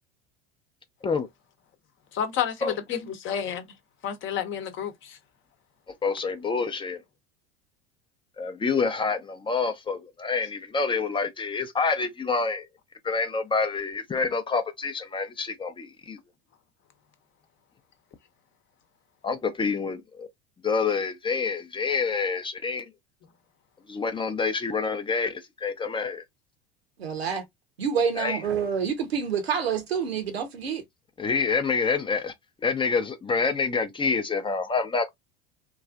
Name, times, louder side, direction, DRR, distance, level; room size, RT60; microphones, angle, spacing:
voice 1, 2.1-3.6 4.0-5.2, left 9 dB, 40° left, 0.9 m, -30 dB
voice 2, 6.0-7.0 8.4-12.7 13.0-16.2 19.2-20.3 20.6-22.9 23.9-26.2 28.2-28.4 31.2-32.3 32.6-35.1, left 4 dB, 15° left, 0.5 m, -27 dB
voice 3, 27.0-27.4 27.8-30.8, right 6 dB, 85° right, 1.0 m, -27 dB
3.1 x 2.4 x 2.4 m
hypercardioid pair, 80°, 30 cm